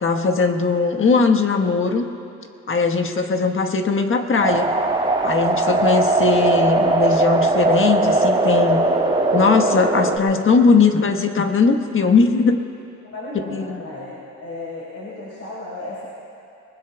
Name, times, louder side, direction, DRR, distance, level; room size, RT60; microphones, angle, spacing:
voice 1, 0.0-2.1 2.7-4.7 5.2-8.8 9.3-12.6 13.5-13.8, left 4 dB, 45° left, 5 dB, 1.4 m, -19 dB
sound 1, 4.4-10.2, right 2 dB, 15° right, 2.1 m, -19 dB
voice 2, 13.0-16.1, left 2 dB, 60° left, -7 dB, 4.2 m, -34 dB
28.0 x 20.5 x 2.4 m, 2.6 s
cardioid pair, 90°, 30 cm